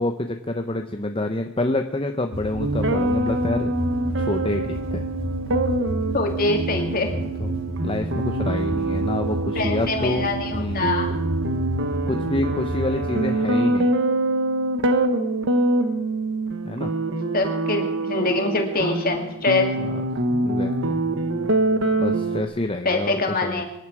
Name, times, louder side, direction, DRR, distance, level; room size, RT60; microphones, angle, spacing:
voice 1, 0.0-3.7 4.2-5.1 7.2-7.5 7.8-10.2 10.5-10.9 12.1-13.9 16.6-16.9 19.8-20.0 20.3-21.0 22.0-23.6, left 1 dB, 25° left, 6 dB, 0.7 m, -27 dB
sound 1, 2.3-13.1, right 2 dB, 75° right, 2.5 m, -29 dB
sound 2, 2.6-22.4, right 2 dB, 60° right, 1.3 m, -25 dB
voice 2, 6.1-7.1 9.6-11.1 17.3-19.7 22.8-23.6, left 2 dB, 40° left, 3 dB, 2.6 m, -24 dB
25.0 x 11.0 x 4.9 m, 0.93 s
head